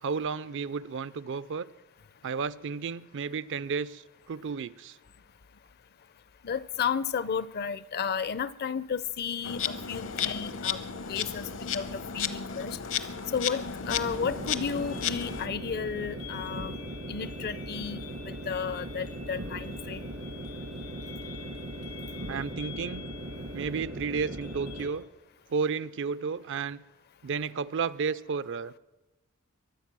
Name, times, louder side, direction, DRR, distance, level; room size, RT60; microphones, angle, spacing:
voice 1, 0.0-1.7 2.2-5.0 22.3-23.1 23.5-25.0 25.5-26.8 27.2-28.7, right 5 dB, 60° right, 0.4 m, -32 dB
voice 2, 6.4-10.8 11.1-11.4 11.7-12.8 13.3-16.8 17.1-20.1, left 6 dB, 45° left, 0.5 m, -33 dB
Insect, 9.4-15.5, left 7 dB, 65° left, 0.9 m, -34 dB
sound 1, 12.8-24.9, left 8 dB, 85° left, 4.8 m, -49 dB
sound 2, 13.9-24.9, right 1 dB, 85° right, 2.1 m, -39 dB
23.5 x 8.0 x 6.1 m
head